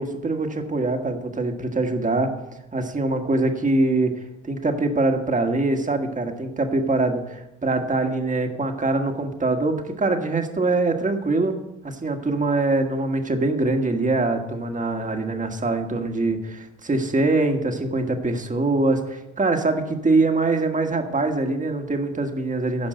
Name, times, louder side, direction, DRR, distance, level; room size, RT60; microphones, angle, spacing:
voice 1, 0.0-2.3 2.7-4.1 4.5-11.6 11.8-22.9, right 2 dB, 25° right, 5 dB, 1.5 m, -23 dB
12.0 x 5.1 x 7.7 m, 0.95 s
cardioid pair, 90°, 30 cm